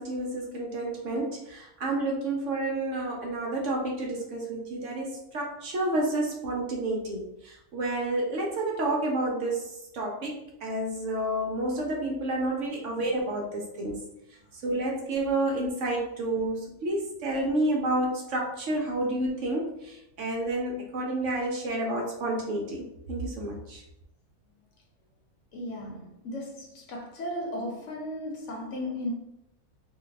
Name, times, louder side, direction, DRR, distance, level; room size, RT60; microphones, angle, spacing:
voice 1, 0.0-9.7 9.9-14.1 14.5-23.8, right 1 dB, 65° right, 0.9 m, -30 dB
voice 2, 25.5-29.1, left 1 dB, 60° left, 1.0 m, -36 dB
2.7 x 2.2 x 3.9 m
omnidirectional pair, 1.5 m